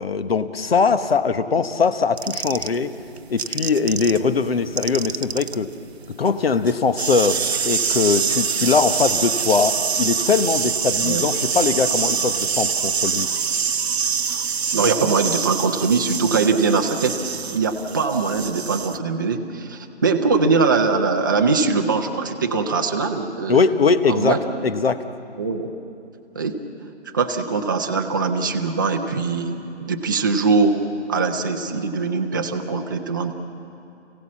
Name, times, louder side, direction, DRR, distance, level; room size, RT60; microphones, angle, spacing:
voice 1, 0.0-2.9 3.3-5.7 6.2-7.4 7.6-13.3 23.5-24.4 24.6-25.0, left 5 dB, 55° left, 11 dB, 1.2 m, -21 dB
sound 1, 2.2-4.2 4.5-19.0, right 6 dB, 65° right, 0.8 m, -25 dB
voice 2, 14.7-17.1 17.5-23.6 24.1-24.4 25.4-25.7 26.3-26.6 27.1-29.6 29.8-30.8 31.1-33.3, right 4 dB, 20° right, 3 dB, 0.7 m, -21 dB
29.5 x 17.0 x 7.4 m, 2.7 s
figure-of-eight pair, 160°, 35 cm